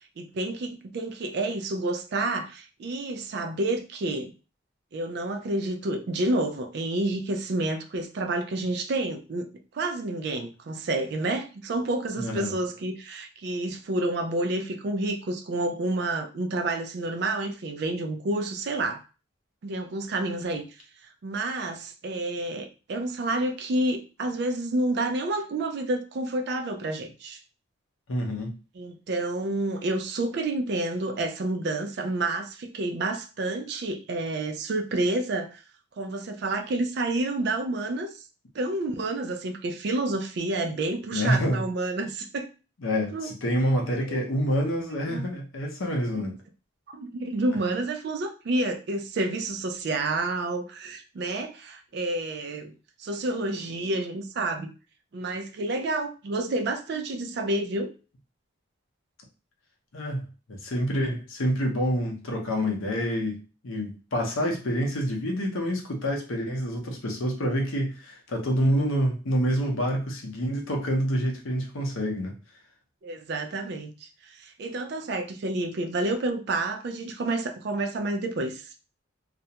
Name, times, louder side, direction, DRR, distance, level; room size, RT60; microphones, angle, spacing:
voice 1, 0.2-4.3 4.9-9.5 9.7-19.0 19.6-20.7 21.2-27.4 28.8-35.6 36.0-38.2 38.5-42.5 43.1-43.3 44.1-44.2 45.1-45.3 46.1-46.2 46.9-52.7 53.0-54.7 55.1-57.9 73.0-78.7, right 2 dB, 50° right, 0.3 m, -29 dB
voice 2, 12.2-12.5 28.1-28.5 41.1-41.6 42.8-46.3 59.9-60.2 60.5-63.4 63.6-72.3, equal, 75° left, 0.7 m, -27 dB
2.4 x 2.1 x 2.7 m
head